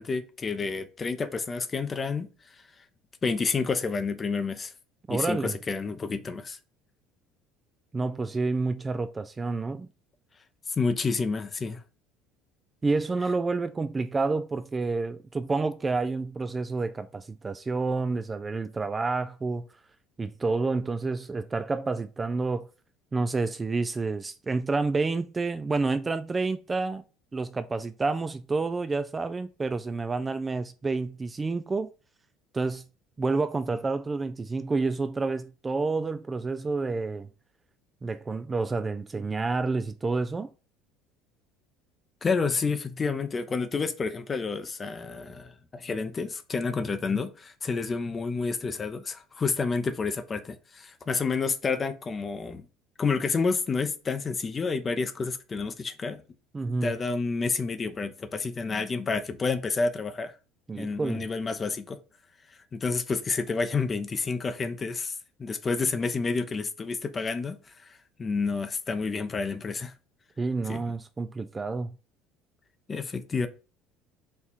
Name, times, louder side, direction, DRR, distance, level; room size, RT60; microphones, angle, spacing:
voice 1, 0.0-2.3 3.2-4.7 5.1-6.6 10.8-11.8 42.2-52.7 53.0-56.2 56.8-60.3 60.8-62.0 62.7-65.1 65.4-67.6 68.2-69.9 70.7-70.8 72.9-73.5, left 4 dB, 30° left, 0.6 m, -29 dB
voice 2, 5.1-5.5 7.9-9.9 12.8-19.7 20.2-22.7 23.1-27.0 27.3-31.9 32.5-32.8 33.2-37.3 38.0-40.5 56.5-56.9 60.7-61.2 70.4-71.9, right 3 dB, 20° right, 0.3 m, -29 dB
4.3 x 2.3 x 4.1 m
supercardioid pair, 90°, 0 cm